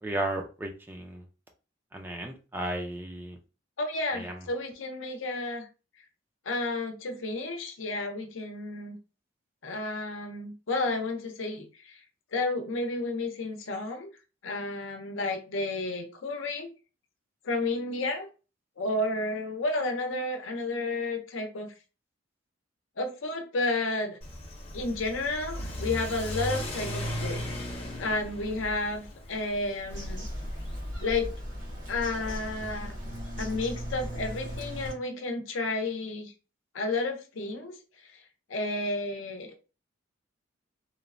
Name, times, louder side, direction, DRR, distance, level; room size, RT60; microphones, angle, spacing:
voice 1, 0.0-1.2 1.9-3.4 4.1-4.5, right 1 dB, 10° right, 2 dB, 0.3 m, -34 dB
voice 2, 3.8-5.7 6.5-9.0 9.6-12.0 12.3-14.1 14.4-16.7 17.4-18.3 18.8-21.7 23.0-24.2 24.7-27.7 28.0-30.3 31.0-31.3 31.9-32.9 33.4-36.3 36.7-37.8 38.5-39.5, left 2 dB, 85° left, 5 dB, 0.6 m, -31 dB
Car / Accelerating revving vroom, 24.2-30.9, left 1 dB, 30° left, 0.6 m, -37 dB
Bird vocalization bird call bird song, 29.9-34.9, equal, 70° right, 1.1 m, -37 dB
2.9 x 2.0 x 2.5 m, 0.33 s
head